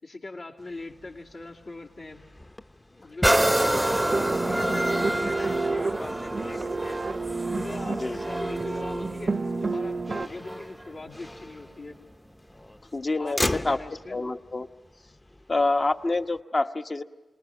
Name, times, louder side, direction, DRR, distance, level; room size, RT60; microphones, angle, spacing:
voice 1, 0.0-2.2 2.9-3.8 4.2-7.0 7.5-9.4 9.7-12.0 13.2-14.2, left 2 dB, 75° left, -4 dB, 2.8 m, -41 dB
Motor vehicle (road), 0.6-16.4, left 1 dB, 25° left, 0.8 m, -40 dB
sound 1, 3.2-10.8 11.4-11.5, right 1 dB, 10° right, 0.7 m, -28 dB
sound 2, 3.7-10.3, right 3 dB, 55° right, 0.7 m, -30 dB
voice 2, 4.6-5.0 7.9-8.2 12.9-13.8 14.1-14.7 15.5-17.0, left 2 dB, 45° left, 7 dB, 1.0 m, -27 dB
27.0 x 19.5 x 7.8 m, 1.2 s
cardioid pair, 45°, 0 cm